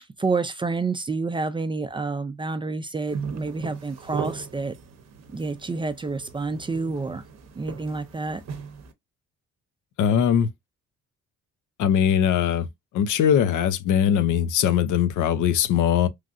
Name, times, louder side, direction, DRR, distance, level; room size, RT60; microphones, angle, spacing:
voice 1, 0.2-4.8 5.3-7.2 7.5-8.4, right 3 dB, 15° right, 0.3 m, -28 dB
sound 1, 3.1-8.9, right 6 dB, 60° right, 0.7 m, -38 dB
voice 2, 10.0-10.5 11.8-12.7 12.9-16.1, left 9 dB, 80° left, 0.6 m, -21 dB
3.2 x 2.5 x 2.4 m
cardioid pair, 90°, 30 cm